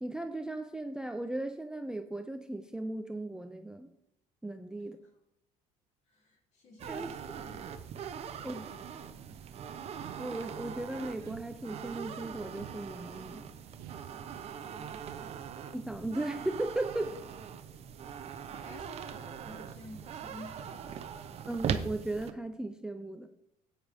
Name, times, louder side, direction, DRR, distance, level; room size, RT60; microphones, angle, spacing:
voice 1, 0.0-3.9 4.4-5.0 6.9-7.1 8.4-8.5 10.2-13.5 15.7-17.1 21.5-23.3, right 2 dB, 5° right, 8 dB, 0.4 m, -36 dB
voice 2, 6.0-7.7 8.3-9.6 14.7-15.4 17.7-21.3, left 1 dB, 45° left, 0 dB, 3.1 m, -53 dB
sound 1, 6.8-22.3, right 8 dB, 40° right, 0.8 m, -41 dB
sound 2, 10.0-10.8 11.2-12.0 12.5-13.3 13.8-14.6 15.1-15.7, right 13 dB, 80° right, 0.5 m, -51 dB
11.0 x 9.1 x 3.5 m, 0.77 s
cardioid pair, 130°, 15 cm